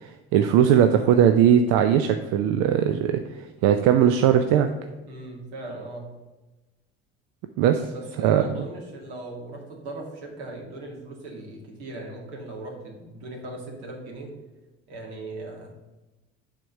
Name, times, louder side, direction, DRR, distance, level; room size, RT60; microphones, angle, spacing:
voice 1, 0.0-3.2 3.6-4.7 7.6-7.8 8.2-8.4, right 9 dB, 65° right, 8 dB, 0.5 m, -19 dB
voice 2, 5.0-6.1 7.7-14.3 14.9-15.7, right 2 dB, 80° right, 0 dB, 2.0 m, -38 dB
7.4 x 3.7 x 6.4 m, 1.1 s
hypercardioid pair, 65°, 32 cm